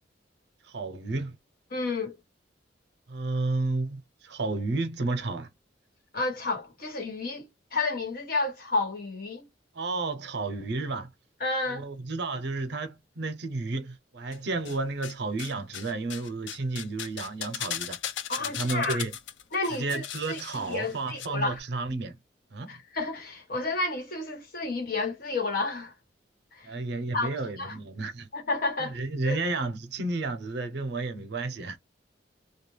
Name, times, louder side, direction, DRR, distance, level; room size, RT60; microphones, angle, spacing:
voice 1, 0.7-1.3 3.1-5.5 9.7-11.1 11.7-18.0 18.4-19.1 19.8-22.2 22.5-22.7 26.6-28.3 28.8-31.8, right 3 dB, 65° right, 0.6 m, -32 dB
voice 2, 1.7-2.2 6.1-9.5 11.4-11.9 18.3-19.0 19.5-21.6 22.7-25.9 26.5-26.7 27.1-27.8 28.3-29.0 29.2-29.4, left 3 dB, 50° left, 1.2 m, -31 dB
sound 1, 14.3-15.1 15.4-21.3 21.5-21.6, left 10 dB, 80° left, 0.5 m, -37 dB
2.3 x 2.3 x 3.1 m
head